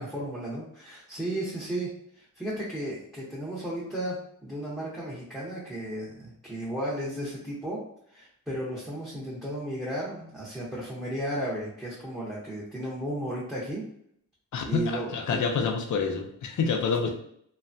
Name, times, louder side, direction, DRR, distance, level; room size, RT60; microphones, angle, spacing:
voice 1, 0.0-13.8 14.6-15.7, right 1 dB, ahead, -6 dB, 0.7 m, -34 dB
voice 2, 14.5-17.1, left 5 dB, 60° left, 3 dB, 0.5 m, -27 dB
3.1 x 2.2 x 2.6 m, 0.70 s
wide cardioid pair, 100°, 35 cm